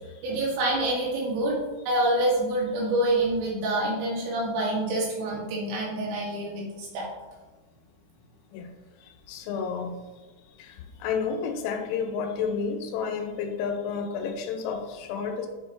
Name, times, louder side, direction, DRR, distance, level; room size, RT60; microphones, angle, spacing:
voice 1, 0.2-1.6 1.9-7.1, right 1 dB, 85° right, -5 dB, 4.7 m, -26 dB
voice 2, 9.3-9.9 11.0-15.5, left 6 dB, 90° left, 5 dB, 3.5 m, -30 dB
11.0 x 4.5 x 3.2 m, 1.2 s
omnidirectional pair, 5.9 m